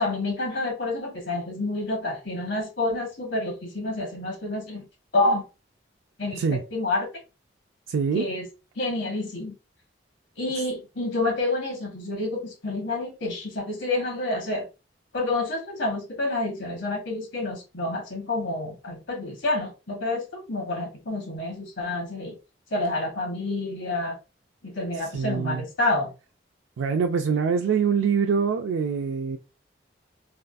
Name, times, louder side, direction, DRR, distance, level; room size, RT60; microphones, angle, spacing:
voice 1, 0.0-4.9 5.1-5.5 6.2-7.1 8.1-8.5 8.8-9.5 10.4-14.7 15.1-22.3 22.7-24.2 24.6-26.1, left 2 dB, 80° left, 1.3 m, -28 dB
voice 2, 7.9-8.2 25.1-25.6 26.8-29.4, right 6 dB, 90° right, 0.4 m, -24 dB
3.5 x 2.5 x 2.2 m
head